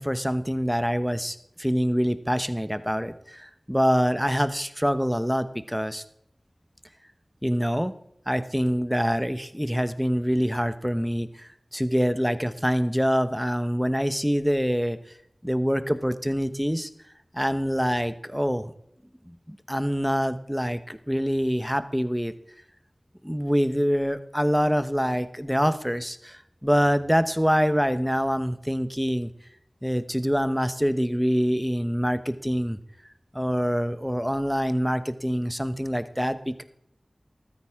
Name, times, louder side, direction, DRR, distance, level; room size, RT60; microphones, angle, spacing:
voice 1, 0.0-6.0 7.4-7.9 8.3-15.0 15.4-16.9 17.3-18.7 19.3-22.3 23.2-29.3 29.8-32.8 33.3-36.6, equal, ahead, 11 dB, 1.0 m, -25 dB
14.0 x 13.0 x 3.6 m, 0.73 s
wide cardioid pair, 40°, 0 cm